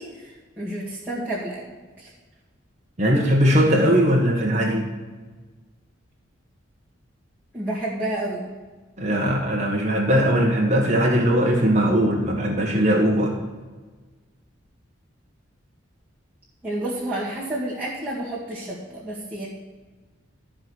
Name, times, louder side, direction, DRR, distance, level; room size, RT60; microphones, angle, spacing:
voice 1, 0.0-1.6 2.0-2.1 3.6-4.0 7.5-8.5 16.6-19.5, right 1 dB, 10° right, -10 dB, 2.0 m, -30 dB
voice 2, 3.0-4.9 9.0-13.3, equal, 35° right, -2 dB, 1.3 m, -20 dB
13.5 x 5.1 x 6.2 m, 1.3 s
head